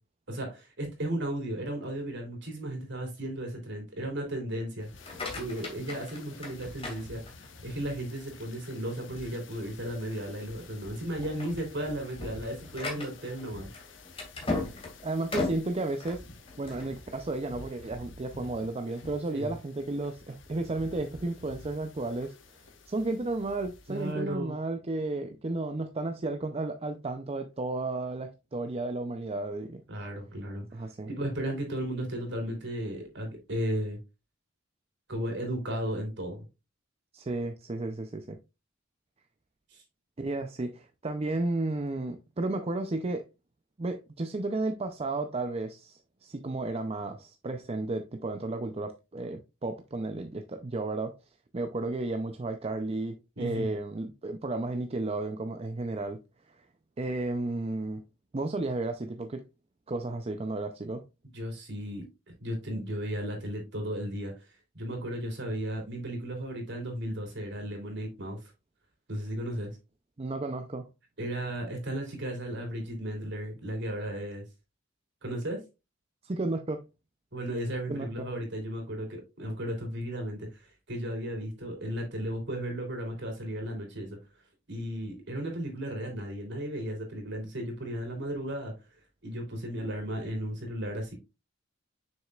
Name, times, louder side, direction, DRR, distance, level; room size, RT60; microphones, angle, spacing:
voice 1, 0.3-13.7 19.3-19.5 23.9-24.5 29.9-30.6 31.1-34.0 35.1-36.4 39.7-39.8 53.4-53.7 61.3-62.0 62.4-64.3 64.7-68.5 69.1-69.7 71.2-74.4 75.2-75.6 77.3-84.2 84.7-88.7 89.2-91.1, right 1 dB, 60° right, 3.2 m, -35 dB
sound 1, 4.8-24.1, left 2 dB, 65° left, 1.2 m, -50 dB
sound 2, 4.9-7.7 8.2-8.6 9.1-9.2 9.6-9.8 10.5-10.7 11.1-16.9, left 2 dB, 30° left, 2.2 m, -37 dB
voice 2, 15.0-16.2 16.6-22.3 22.9-29.8 30.7-31.1 37.1-38.4 40.2-43.2 43.8-51.1 51.5-56.2 56.5-56.7 57.0-58.0 58.3-59.4 59.9-61.0 70.2-70.9 76.2-76.8 77.9-78.3, right 2 dB, 30° right, 0.5 m, -33 dB
7.3 x 6.3 x 2.4 m
head